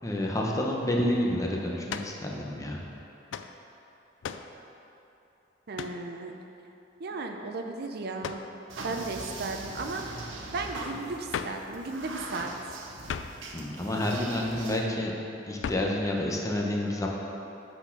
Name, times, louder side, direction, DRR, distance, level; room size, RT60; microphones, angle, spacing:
voice 1, 0.0-2.8 13.5-15.1 15.5-17.1, left 1 dB, 15° left, -1 dB, 0.8 m, -29 dB
sound 1, 1.9-2.2 3.3-3.5 4.2-4.5 5.7-6.0 8.2-8.5 11.3-11.7 13.1-13.4 15.6-16.0, left 6 dB, 75° left, 0.3 m, -36 dB
voice 2, 5.7-6.3 7.0-8.4 8.8-12.8, right 3 dB, 55° right, 4 dB, 0.5 m, -35 dB
sound 2, 8.7-14.8, right 2 dB, 85° right, 0.8 m, -41 dB
8.0 x 4.3 x 5.9 m, 2.9 s
head